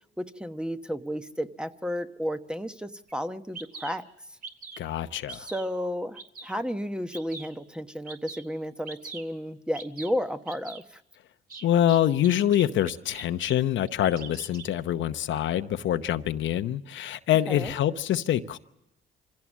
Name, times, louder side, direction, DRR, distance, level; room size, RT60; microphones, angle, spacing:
voice 1, 0.2-4.0 5.3-11.0 17.5-17.7, equal, 5° right, 1.0 m, -32 dB
Bird vocalization bird call bird song, 3.1-3.2 3.5-3.9 4.4-4.9 5.3-5.7 6.2-6.6 7.1-7.5 8.1-8.4 8.9-9.2 9.7-10.1 10.5-10.8 11.5-13.5 13.9-14.7, right 4 dB, 45° right, 2.4 m, -42 dB
voice 2, 4.8-5.5 11.6-18.6, left 11 dB, 75° left, 0.9 m, -25 dB
25.0 x 16.0 x 7.3 m
cardioid pair, 90°, 20 cm